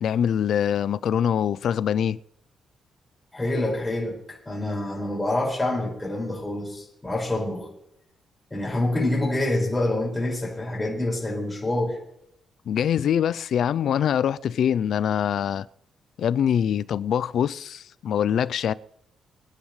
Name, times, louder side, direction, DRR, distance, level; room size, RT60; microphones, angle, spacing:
voice 1, 0.0-2.2 12.7-15.7 16.2-18.7, left 9 dB, 70° left, 0.5 m, -24 dB
voice 2, 3.3-7.7 8.5-12.0, left 1 dB, 15° left, 5.8 m, -26 dB
25.0 x 10.5 x 3.3 m
cardioid pair, 100°, 0 cm